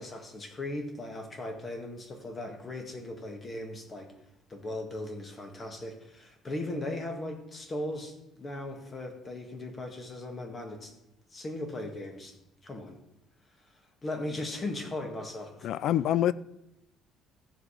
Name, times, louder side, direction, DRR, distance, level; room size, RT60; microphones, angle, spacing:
voice 1, 0.0-4.1 4.5-10.9 11.3-12.4 12.6-13.0 14.0-15.7, left 1 dB, 25° left, 1.6 m, -38 dB
voice 2, 15.6-16.3, left 11 dB, 55° left, 0.3 m, -25 dB
14.5 x 5.0 x 5.6 m
cardioid pair, 160°, 0 cm